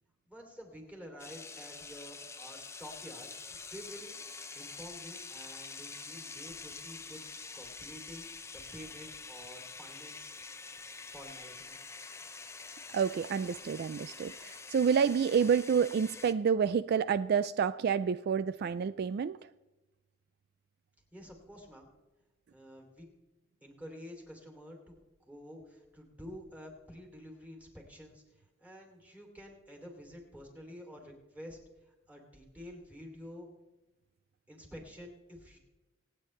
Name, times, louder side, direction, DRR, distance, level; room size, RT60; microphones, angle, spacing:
voice 1, 0.3-4.2 4.5-7.2 7.5-8.3 8.5-10.4 11.1-11.8 21.1-21.9 22.5-23.1 23.6-25.0 25.3-31.6 31.8-33.5 34.5-35.6, equal, 5° right, 2 dB, 2.8 m, -49 dB
sound 1, 1.2-16.3, left 4 dB, 15° left, 0.6 m, -46 dB
voice 2, 12.9-19.4, right 7 dB, 55° right, 15 dB, 0.3 m, -29 dB
26.5 x 9.1 x 3.2 m, 1.1 s
head